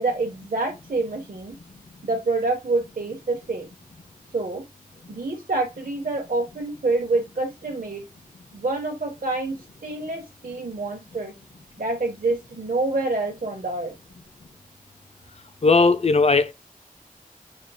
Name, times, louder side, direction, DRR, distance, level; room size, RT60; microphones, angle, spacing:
voice 1, 0.0-1.6 2.0-3.7 4.3-4.6 5.1-8.0 8.5-9.6 9.8-11.3 11.8-13.9, right 3 dB, 65° right, 0.7 m, -27 dB
voice 2, 15.6-16.5, left 3 dB, 45° left, 0.5 m, -17 dB
6.4 x 2.7 x 2.2 m
wide cardioid pair, 65°, 15 cm